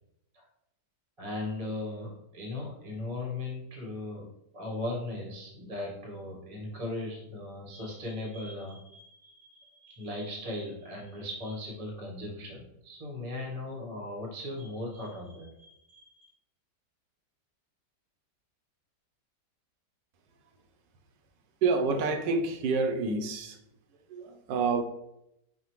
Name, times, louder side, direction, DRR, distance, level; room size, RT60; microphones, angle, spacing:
voice 1, 1.2-4.3 4.5-16.3, left 2 dB, 30° right, -2 dB, 0.7 m, -38 dB
voice 2, 21.6-23.6 24.1-24.8, right 4 dB, 85° right, 6 dB, 1.2 m, -28 dB
5.8 x 2.1 x 3.0 m, 0.83 s
omnidirectional pair, 1.9 m